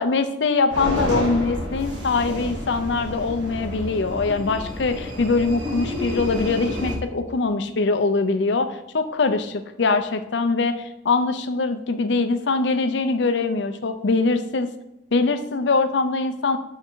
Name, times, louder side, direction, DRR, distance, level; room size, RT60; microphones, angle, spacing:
voice 1, 0.0-14.7 15.1-16.6, left 3 dB, 75° left, 9 dB, 0.6 m, -23 dB
sound 1, 0.7-7.0, left 1 dB, 80° right, 1.7 m, -29 dB
6.7 x 3.6 x 4.5 m, 0.89 s
head